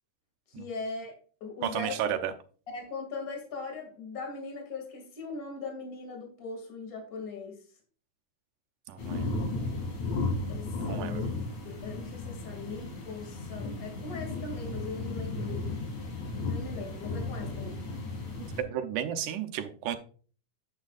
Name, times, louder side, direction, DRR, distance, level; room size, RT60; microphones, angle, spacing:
voice 1, 0.5-1.1 1.4-2.0 2.7-7.6 10.5-11.3 11.6-15.7 16.5-17.8, left 4 dB, 30° left, 2 dB, 2.5 m, -39 dB
voice 2, 1.6-2.3 8.9-9.3 10.9-11.3 18.6-20.0, right 10 dB, 80° right, 7 dB, 2.4 m, -32 dB
sound 1, 9.0-18.6, left 2 dB, 65° left, 4.0 m, -35 dB
9.9 x 8.7 x 2.4 m, 0.40 s
omnidirectional pair, 3.6 m